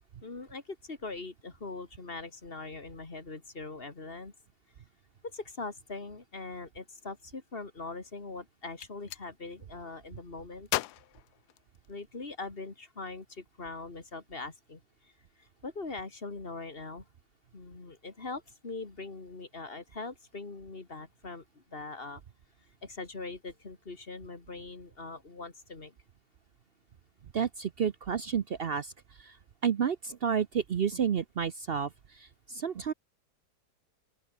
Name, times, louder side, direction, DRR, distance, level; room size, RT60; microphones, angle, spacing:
voice 1, 0.2-4.3 5.2-10.7 11.9-15.1 15.4-17.0 17.5-22.2 22.8-25.9, left 3 dB, 30° left, 2.6 m, -42 dB
Gunshot gunfire, 8.6-9.3 10.7-12.1, left 15 dB, 75° left, 1.1 m, -36 dB
voice 2, 27.3-28.9 29.2-29.4 29.6-32.9, right 7 dB, 60° right, 0.6 m, -31 dB
open air
omnidirectional pair, 1.9 m